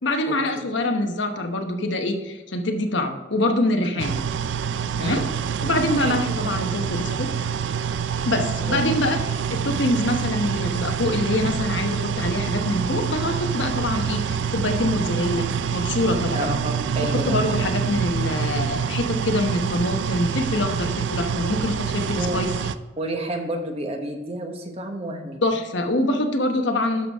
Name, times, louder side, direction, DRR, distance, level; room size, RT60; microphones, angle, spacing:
voice 1, 0.0-4.1 5.0-5.2 5.6-7.3 8.3-15.5 15.7-16.5 17.0-22.5 25.4-27.1, left 1 dB, 70° left, 5 dB, 1.0 m, -25 dB
sound 1, 4.0-22.8, right 7 dB, 70° right, 0.4 m, -26 dB
voice 2, 16.3-17.4 22.2-22.4 23.0-25.4, right 1 dB, 30° right, 4 dB, 1.1 m, -30 dB
11.5 x 5.9 x 3.6 m, 1.2 s
head